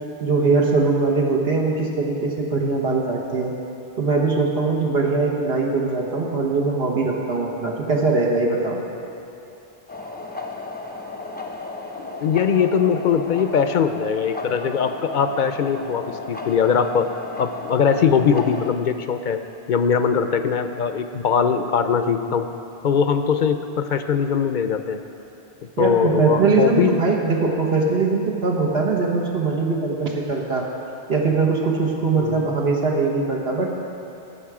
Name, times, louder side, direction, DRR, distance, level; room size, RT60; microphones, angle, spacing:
voice 1, 0.2-3.5 4.0-8.8 25.8-30.7 31.1-33.7, right 4 dB, 75° right, -2 dB, 1.4 m, -21 dB
sound 1, 9.9-18.7, left 3 dB, 10° left, 0.6 m, -34 dB
voice 2, 12.0-17.1 17.4-19.4 19.7-22.5 22.8-25.0 25.8-27.0 32.2-32.4, left 6 dB, 60° left, 8 dB, 0.6 m, -21 dB
17.5 x 6.9 x 4.8 m, 2.8 s
omnidirectional pair, 1.0 m